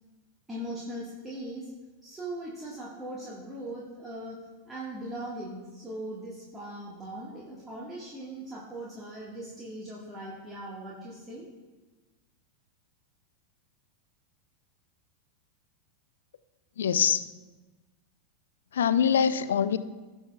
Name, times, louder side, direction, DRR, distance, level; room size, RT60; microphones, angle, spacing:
voice 1, 0.5-1.7 2.0-4.4 4.7-11.5, right 1 dB, 10° right, -6 dB, 1.8 m, -39 dB
voice 2, 16.8-17.2 18.7-19.8, left 8 dB, 65° left, 15 dB, 0.4 m, -24 dB
17.0 x 6.2 x 2.4 m, 1.3 s
figure-of-eight pair, 90°, 0 cm